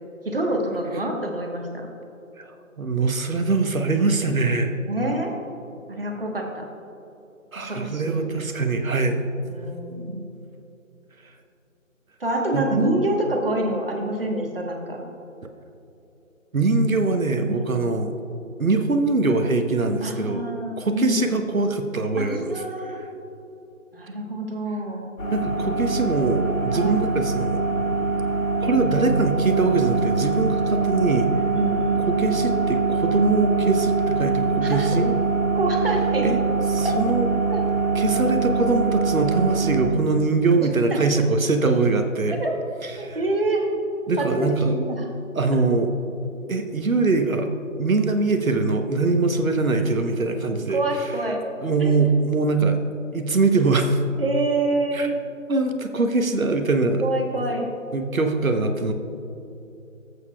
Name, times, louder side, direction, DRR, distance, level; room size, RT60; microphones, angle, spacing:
voice 1, 0.2-1.9 4.8-5.4 5.9-6.7 7.6-8.3 9.4-10.2 12.2-15.0 17.5-17.7 20.0-21.3 22.2-23.0 23.9-25.1 26.7-27.1 31.5-32.1 34.6-34.9 35.5-36.3 37.5-37.6 40.6-41.0 42.4-42.5 43.0-43.7 44.2-45.1 50.7-51.4 51.8-52.0 54.2-55.2 57.0-57.6, right 2 dB, 45° right, 1 dB, 1.2 m, -26 dB
voice 2, 2.8-4.8 7.5-9.3 12.5-12.7 16.5-18.1 18.6-20.4 20.8-22.6 25.3-27.6 28.6-31.3 32.1-35.1 36.2-36.4 36.7-37.3 37.9-42.4 42.8-43.2 44.1-44.7 45.3-45.9 46.5-47.5 47.8-51.1 51.6-52.8 53.1-54.0 54.9-55.1 55.5-57.0 57.9-58.9, right 3 dB, 75° right, 6 dB, 1.0 m, -22 dB
sound 1, 25.2-39.8, right 4 dB, 70° left, 2.2 m, -23 dB
14.5 x 8.2 x 2.3 m, 2.8 s
figure-of-eight pair, 165°, 41 cm